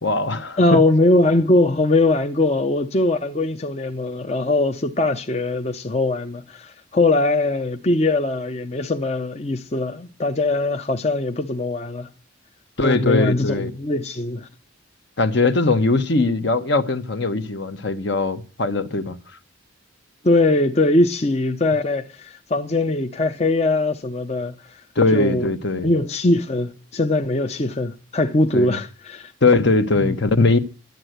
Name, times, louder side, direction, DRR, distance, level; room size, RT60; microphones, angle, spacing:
voice 1, 0.0-0.8 12.8-13.7 15.2-19.2 25.0-25.9 28.5-28.8 29.4-30.6, left 3 dB, 60° left, 1.1 m, -20 dB
voice 2, 0.6-12.1 12.8-14.5 20.2-24.8 25.1-25.5 25.8-29.3 30.0-30.2, left 2 dB, 30° left, 0.6 m, -21 dB
12.0 x 9.1 x 7.9 m
head